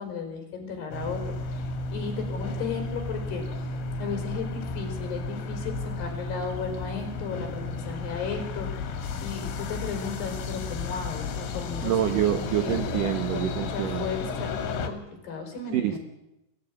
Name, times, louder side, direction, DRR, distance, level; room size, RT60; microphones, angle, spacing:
voice 1, 0.0-3.4 4.0-12.8 13.3-16.0, left 5 dB, 65° left, 4 dB, 6.4 m, -35 dB
sound 1, 0.9-14.9, left 3 dB, 85° left, 4.5 m, -33 dB
voice 2, 11.8-14.1 15.7-16.0, right 11 dB, 70° right, 7 dB, 2.1 m, -26 dB
23.5 x 15.5 x 10.0 m, 0.90 s
omnidirectional pair, 5.1 m